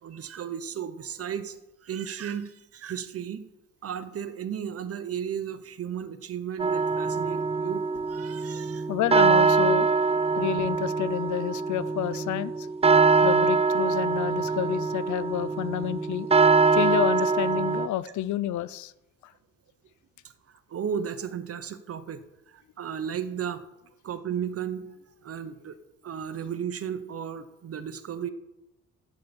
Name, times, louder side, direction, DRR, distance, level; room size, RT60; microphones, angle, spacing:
voice 1, 0.0-3.5 3.8-8.9 20.5-23.6 24.0-24.9 25.2-25.8 26.0-28.3, right 8 dB, 50° right, 12 dB, 1.0 m, -34 dB
sound 1, 6.6-17.9, right 4 dB, 20° right, 0.5 m, -23 dB
voice 2, 8.9-9.9 10.4-12.7 13.2-16.3 16.7-18.9 19.2-19.3, left 12 dB, 75° left, 17 dB, 0.6 m, -29 dB
11.5 x 8.5 x 5.3 m, 0.94 s
cardioid pair, 90°, 30 cm